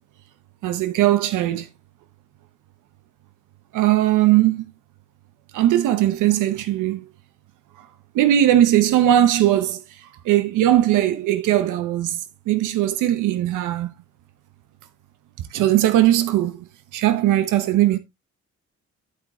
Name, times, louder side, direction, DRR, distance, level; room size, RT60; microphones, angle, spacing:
voice 1, 0.6-1.7 3.7-4.6 5.5-7.0 8.1-13.9 15.5-16.7 16.9-18.0, right 13 dB, 85° right, 0.9 m, -19 dB
11.5 x 4.8 x 3.1 m
cardioid pair, 90°, 30 cm